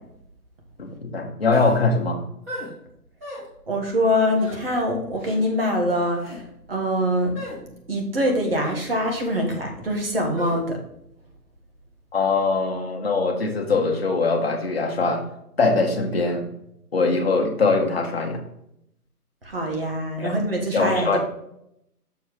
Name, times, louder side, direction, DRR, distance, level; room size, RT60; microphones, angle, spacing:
voice 1, 0.8-2.2 12.1-15.2 15.6-16.5 16.9-18.4 20.2-20.4 20.7-21.2, left 3 dB, 40° left, 3 dB, 1.2 m, -22 dB
sound 1, 1.5-1.8 2.5-2.7 3.2-3.4 4.4-4.6 5.2-5.4 6.1-6.4 7.3-7.6 8.6-8.8 10.4-10.6, left 1 dB, 10° right, 1.4 m, -36 dB
voice 2, 3.7-6.4 6.7-7.4 7.9-10.8 19.4-21.2, equal, 35° right, 2 dB, 1.6 m, -24 dB
7.1 x 4.4 x 4.7 m, 0.76 s
hypercardioid pair, 175°, 47 cm